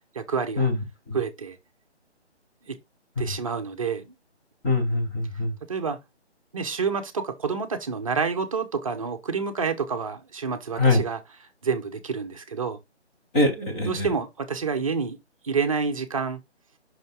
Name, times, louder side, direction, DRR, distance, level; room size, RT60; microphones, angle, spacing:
voice 1, 0.1-0.7 1.1-1.6 2.6-2.8 3.2-4.1 5.7-6.0 6.5-11.2 11.6-12.8 13.7-15.2 15.4-16.4, right 5 dB, 30° right, 0.9 m, -28 dB
voice 2, 4.6-5.5 10.8-11.0 13.3-14.1, left 2 dB, 10° left, 1.0 m, -23 dB
5.8 x 5.4 x 3.5 m
figure-of-eight pair, 145°, 35 cm